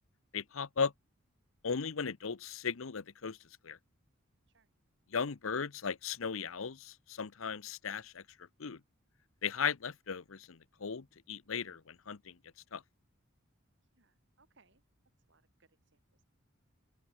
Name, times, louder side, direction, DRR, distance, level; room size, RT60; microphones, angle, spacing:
voice 1, 0.3-0.9 1.6-3.4 3.6-3.8 5.1-8.2 8.6-8.8 9.4-12.4 12.7-12.8, left 6 dB, 75° left, 0.8 m, -37 dB
voice 2, 13.8-14.8 15.2-16.2, right 4 dB, 60° right, 5.7 m, -70 dB
open air
head